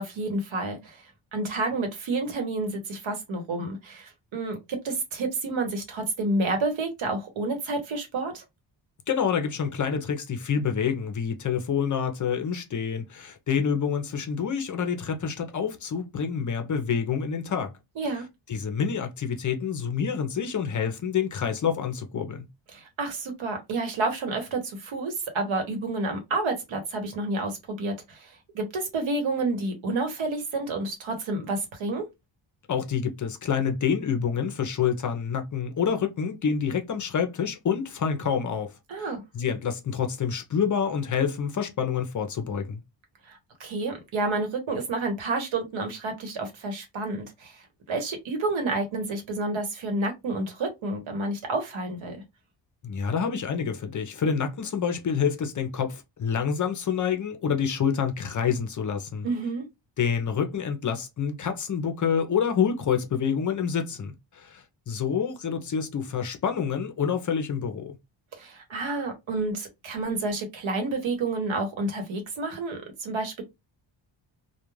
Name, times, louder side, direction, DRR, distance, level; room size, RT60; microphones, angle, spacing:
voice 1, 0.0-8.4 18.0-18.3 22.7-32.0 38.9-39.2 43.2-52.2 59.2-59.6 68.3-73.4, right 2 dB, 75° right, 1.1 m, -30 dB
voice 2, 9.1-17.7 18.5-22.4 32.7-38.7 39.3-42.8 52.8-59.3 60.0-68.0, left 7 dB, 40° left, 0.5 m, -27 dB
2.3 x 2.2 x 3.0 m
cardioid pair, 120°, 47 cm